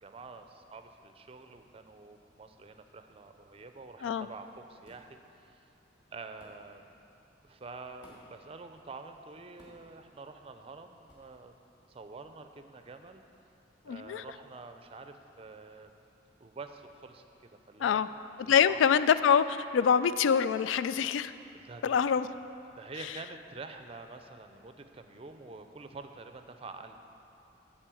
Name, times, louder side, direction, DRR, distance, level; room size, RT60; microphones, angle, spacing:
voice 1, 0.0-5.7 6.1-6.9 7.4-11.5 11.9-13.2 13.9-15.9 16.4-18.0 18.4-18.8 21.5-22.1 22.7-27.0, right 3 dB, 30° right, 7 dB, 0.4 m, -47 dB
sound 1, 4.8-5.1 6.4-6.6 8.0-8.4 9.6-9.9 11.1-11.3, right 1 dB, 25° left, 2.2 m, -57 dB
voice 2, 13.9-14.2 17.8-18.1 18.4-21.3 21.8-22.3, left 7 dB, 85° left, 15 dB, 0.3 m, -25 dB
10.0 x 4.3 x 7.6 m, 2.8 s
head